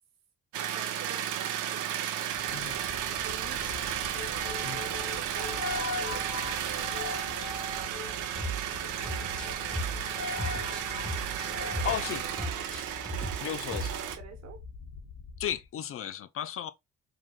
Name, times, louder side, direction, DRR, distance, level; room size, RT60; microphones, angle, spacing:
sound 1, 0.5-14.2, right 10 dB, 90° right, 0.8 m, -34 dB
voice 1, 0.6-2.1 2.7-8.6 9.1-12.7 13.1-14.6, right 6 dB, 60° right, 1.2 m, -49 dB
sound 2, 2.3-15.7, left 3 dB, 75° left, 0.9 m, -41 dB
sound 3, 8.4-8.8 9.0-12.1 12.4-13.5 13.7-14.0, right 1 dB, 5° left, 1.4 m, -36 dB
voice 2, 11.8-12.2 13.4-13.9 15.4-16.7, left 10 dB, 45° left, 0.5 m, -34 dB
4.8 x 3.1 x 2.3 m
cardioid pair, 90°, 30 cm